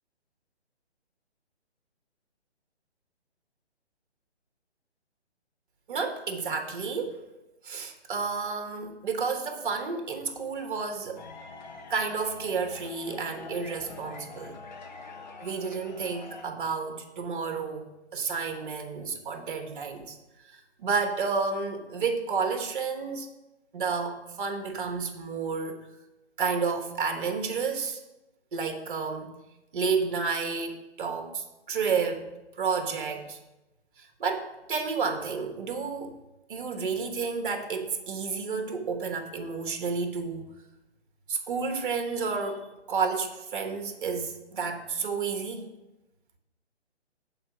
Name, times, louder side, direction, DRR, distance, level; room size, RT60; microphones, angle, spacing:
voice 1, 5.9-7.2 7.6-11.2 11.9-14.6 15.4-20.2 20.4-23.3 23.7-25.8 26.4-28.0 28.5-29.3 29.7-32.3 32.6-33.4 34.0-36.1 36.5-40.5 41.3-45.7, right 5 dB, 50° right, 5 dB, 1.1 m, -31 dB
sound 1, 11.2-16.4, left 4 dB, 40° left, 0.9 m, -45 dB
6.8 x 4.0 x 5.7 m, 1.0 s
figure-of-eight pair, 145°, 34 cm